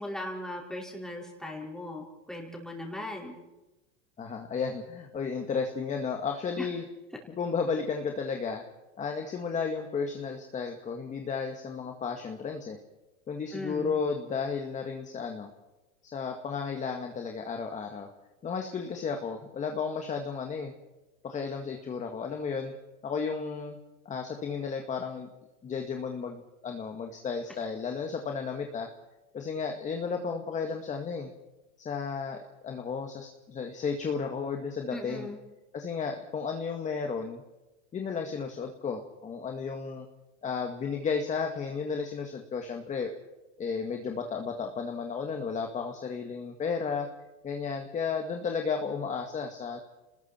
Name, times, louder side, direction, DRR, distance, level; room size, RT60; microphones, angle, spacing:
voice 1, 0.0-3.4 6.6-6.7 13.5-13.9 34.9-35.4, left 1 dB, ahead, -1 dB, 5.3 m, -38 dB
voice 2, 4.2-6.8 7.3-8.6 9.0-12.8 13.3-15.5 16.1-18.1 18.4-20.7 21.2-22.7 23.0-23.8 24.1-25.3 25.6-28.9 29.3-31.3 31.8-35.3 35.7-37.4 37.9-40.1 40.4-43.1 43.6-47.1 47.4-49.8, left 5 dB, 20° left, 3 dB, 1.9 m, -33 dB
29.5 x 20.5 x 4.5 m, 1.1 s
supercardioid pair, 140°, 36 cm